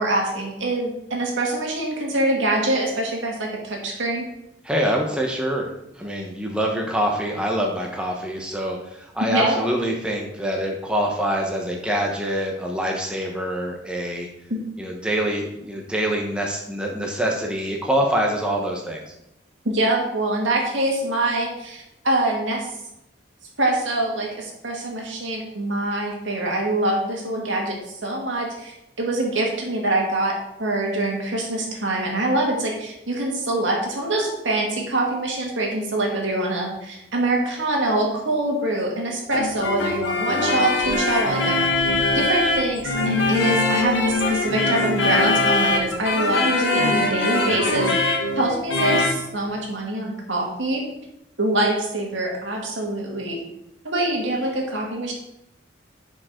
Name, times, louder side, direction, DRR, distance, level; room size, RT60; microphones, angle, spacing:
voice 1, 0.0-4.3 9.3-9.6 14.5-14.6 19.6-22.7 23.6-30.3 30.6-41.6 42.1-47.9 48.4-50.8 51.4-53.4 53.8-55.1, right 1 dB, 85° right, -1 dB, 2.0 m, -24 dB
voice 2, 4.6-5.7 6.0-14.3 14.8-19.1, equal, 5° right, 0 dB, 1.0 m, -25 dB
sound 1, 39.3-49.2, left 2 dB, 80° left, 1.6 m, -22 dB
10.5 x 5.2 x 3.8 m, 0.85 s
head